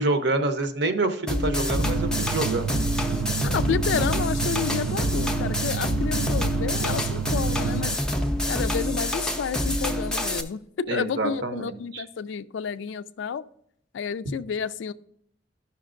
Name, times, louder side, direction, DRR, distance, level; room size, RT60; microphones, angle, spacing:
voice 1, 0.0-2.7 10.9-12.0, right 2 dB, 60° right, 8 dB, 0.7 m, -27 dB
sound 1, 1.3-10.4, left 1 dB, 5° left, 0.5 m, -27 dB
sound 2, 1.7-8.0, right 7 dB, 85° right, 0.3 m, -30 dB
voice 2, 3.4-7.9 8.5-13.4 13.9-14.9, left 7 dB, 70° left, 15 dB, 0.3 m, -30 dB
12.5 x 5.8 x 2.5 m, 0.72 s
head